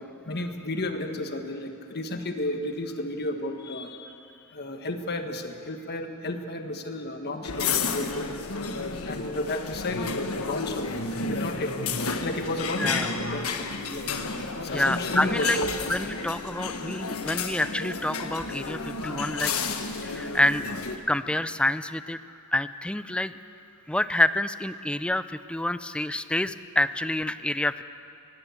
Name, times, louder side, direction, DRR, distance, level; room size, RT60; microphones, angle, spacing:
voice 1, 0.0-4.2 4.5-8.3 9.0-10.9 11.2-11.7 12.2-13.1 13.3-14.1 14.6-15.7, left 1 dB, 50° left, 5 dB, 1.5 m, -32 dB
sound 1, 7.4-21.0, left 4 dB, 80° left, 1.4 m, -31 dB
voice 2, 14.7-15.6 15.9-19.5 20.0-20.6 21.1-22.2 22.5-23.4 23.9-27.8, left 1 dB, 5° left, 13 dB, 0.4 m, -27 dB
20.0 x 16.5 x 8.3 m, 2.5 s
head